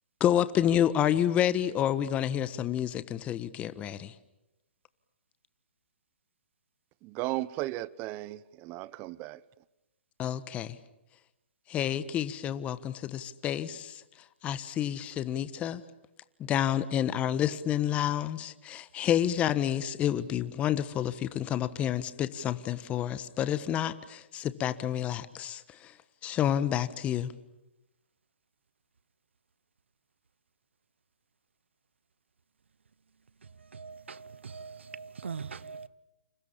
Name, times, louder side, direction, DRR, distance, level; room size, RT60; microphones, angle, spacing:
voice 1, 0.2-4.1 10.2-10.8 11.7-14.0 14.4-15.8 16.4-25.9 26.2-27.3, left 10 dB, 20° left, 1.3 m, -29 dB
voice 2, 7.0-9.4, right 17 dB, 30° right, 0.9 m, -35 dB
voice 3, 33.7-35.9, right 5 dB, 80° right, 1.1 m, -41 dB
29.5 x 28.0 x 7.2 m
hypercardioid pair, 140°, 6 cm